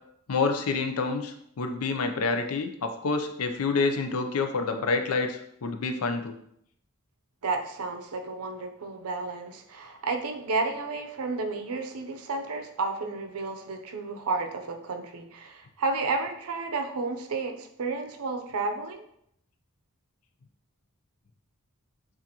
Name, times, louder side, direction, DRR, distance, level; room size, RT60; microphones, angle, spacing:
voice 1, 0.3-6.4, left 4 dB, 85° left, 6 dB, 0.6 m, -28 dB
voice 2, 7.4-19.0, right 3 dB, 90° right, 5 dB, 0.6 m, -32 dB
6.8 x 2.5 x 2.9 m, 0.72 s
head